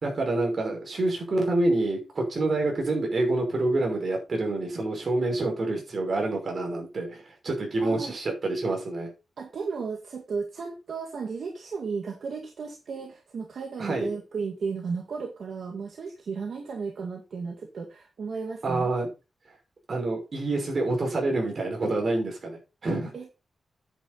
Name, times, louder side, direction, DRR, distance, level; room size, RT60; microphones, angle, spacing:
voice 1, 0.0-9.1 13.8-14.1 18.6-19.1 19.9-23.1, right 2 dB, 45° right, 1 dB, 5.5 m, -27 dB
voice 2, 7.8-8.2 9.4-18.9 23.1-23.3, right 5 dB, 60° right, 2 dB, 2.1 m, -34 dB
10.0 x 8.8 x 4.2 m, 0.29 s
wide cardioid pair, 160°, 0 cm